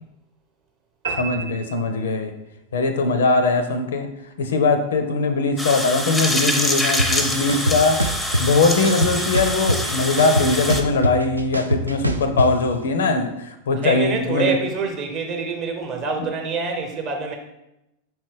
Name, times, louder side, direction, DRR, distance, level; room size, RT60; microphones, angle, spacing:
sound 1, 1.0-2.6, right 5 dB, 70° right, 0.9 m, -32 dB
voice 1, 1.2-2.3 2.7-4.1 4.4-8.0 8.4-14.5, left 3 dB, 65° left, 8 dB, 0.4 m, -21 dB
sound 2, 5.6-10.8, left 1 dB, 5° left, 0.5 m, -25 dB
sound 3, 7.0-7.1 7.5-8.4 8.8-9.9 10.2-12.5, equal, 85° right, 0.3 m, -22 dB
voice 2, 13.8-17.4, right 4 dB, 35° right, 3 dB, 0.8 m, -26 dB
5.3 x 3.1 x 3.3 m, 0.88 s
figure-of-eight pair, 90°, 0 cm